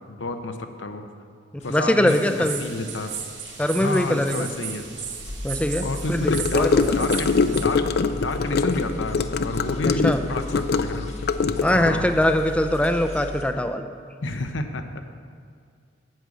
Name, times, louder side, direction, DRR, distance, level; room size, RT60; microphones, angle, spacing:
voice 1, 0.1-1.0 1.6-3.1 3.7-4.9 5.8-7.8 8.1-11.1 11.7-12.1 14.2-15.0, left 2 dB, 90° left, 7 dB, 0.9 m, -30 dB
sound 1, 1.6-13.4, left 2 dB, 40° left, 1.2 m, -37 dB
voice 2, 1.7-2.6 3.6-4.5 5.4-7.1 9.8-10.2 11.6-13.9, left 1 dB, 5° left, 7 dB, 0.5 m, -22 dB
sound 2, 2.1-7.7, right 8 dB, 75° right, 1.0 m, -36 dB
Gurgling / Car passing by / Sink (filling or washing), 6.3-12.0, left 4 dB, 60° left, 0.4 m, -23 dB
9.1 x 6.4 x 8.4 m, 2.2 s
head